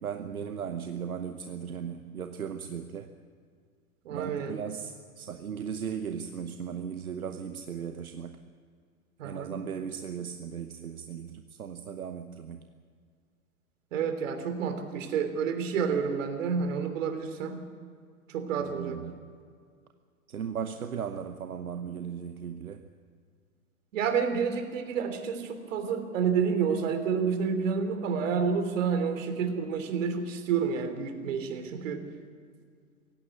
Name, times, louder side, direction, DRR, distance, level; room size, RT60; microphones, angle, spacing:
voice 1, 0.0-3.1 4.1-8.4 9.2-12.7 18.6-19.3 20.3-22.9, right 7 dB, 85° right, 8 dB, 1.1 m, -37 dB
voice 2, 4.0-4.6 9.2-9.6 13.9-17.6 18.3-19.0 23.9-32.0, right 6 dB, 60° right, 8 dB, 3.1 m, -29 dB
17.0 x 16.0 x 9.6 m, 2.1 s
hypercardioid pair, 110°, 42 cm